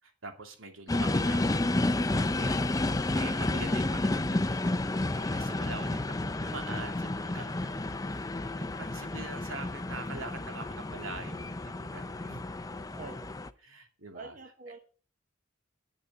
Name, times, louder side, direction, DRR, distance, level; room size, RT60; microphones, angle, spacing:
voice 1, 0.0-12.4 13.6-14.4 14.7-14.8, right 3 dB, 85° right, 5 dB, 2.6 m, -44 dB
sound 1, 0.9-13.5, left 2 dB, 15° left, 0.5 m, -31 dB
voice 2, 12.9-13.3 14.1-14.8, right 3 dB, 40° right, 7 dB, 1.0 m, -46 dB
10.5 x 6.6 x 8.1 m, 0.39 s
head